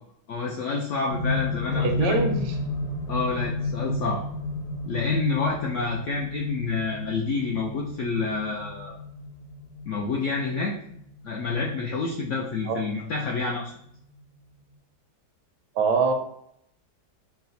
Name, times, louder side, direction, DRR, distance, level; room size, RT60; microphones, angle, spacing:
voice 1, 0.3-2.2 3.1-4.2 4.9-9.0 9.9-10.8 11.2-13.7, left 4 dB, 75° left, -1 dB, 0.7 m, -28 dB
sound 1, 1.1-13.2 14.2-14.3, left 2 dB, 60° left, 0.9 m, -32 dB
voice 2, 1.7-2.5 12.7-12.8 15.8-16.1, right 4 dB, 85° right, 4 dB, 1.3 m, -24 dB
4.8 x 2.1 x 3.9 m, 0.71 s
omnidirectional pair, 1.8 m